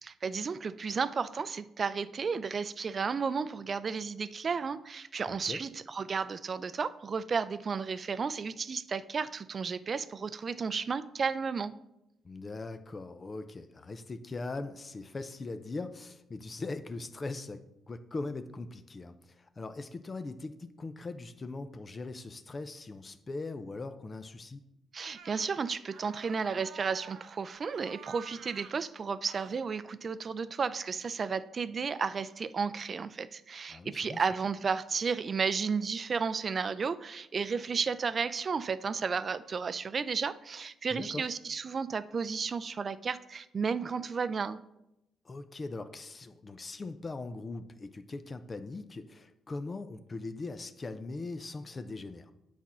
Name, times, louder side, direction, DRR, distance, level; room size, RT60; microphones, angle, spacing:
voice 1, 0.0-11.7 24.9-44.6, right 5 dB, 40° right, 15 dB, 0.4 m, -33 dB
voice 2, 5.3-5.6 12.2-24.6 33.7-34.2 40.9-41.2 45.2-52.3, left 3 dB, 30° left, 10 dB, 0.5 m, -40 dB
sound 1, 25.1-25.5 25.9-27.4 27.7-28.8 29.3-29.6, right 7 dB, 75° right, 0.9 m, -49 dB
8.2 x 4.3 x 6.0 m, 0.89 s
cardioid pair, 90°, 0 cm